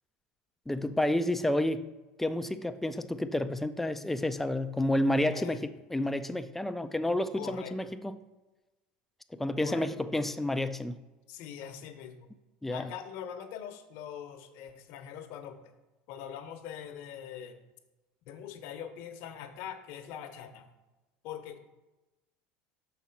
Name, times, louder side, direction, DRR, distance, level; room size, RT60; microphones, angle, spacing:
voice 1, 0.7-1.9 2.2-8.2 9.4-11.0 12.6-12.9, left 1 dB, 5° left, 10 dB, 0.4 m, -30 dB
voice 2, 5.2-5.7 7.4-7.9 9.6-9.9 11.3-12.3 12.7-15.7 16.1-17.6 18.3-20.7 21.2-21.6, left 9 dB, 65° left, 7 dB, 0.9 m, -43 dB
5.9 x 4.2 x 5.8 m, 1.1 s
supercardioid pair, 120°, 4 cm